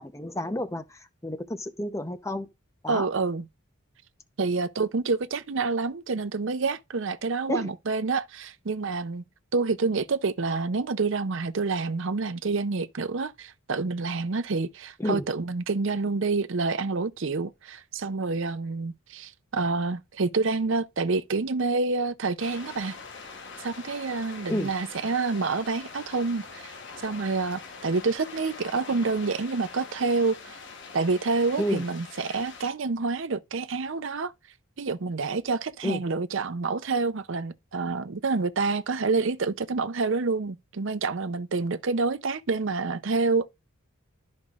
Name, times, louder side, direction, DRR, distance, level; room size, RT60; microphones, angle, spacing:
voice 1, 0.0-2.5 2.8-3.1 7.5-7.7 15.0-15.3 24.5-24.7 31.6-31.8 35.8-36.0, left 1 dB, 15° left, 0.7 m, -30 dB
voice 2, 2.9-3.4 4.4-9.2 9.5-23.0 23.6-26.7 27.0-30.6 30.9-34.3 34.8-43.5, right 4 dB, 60° right, 0.6 m, -28 dB
sound 1, 22.4-32.7, left 4 dB, 55° left, 1.1 m, -43 dB
12.5 x 5.3 x 2.4 m
head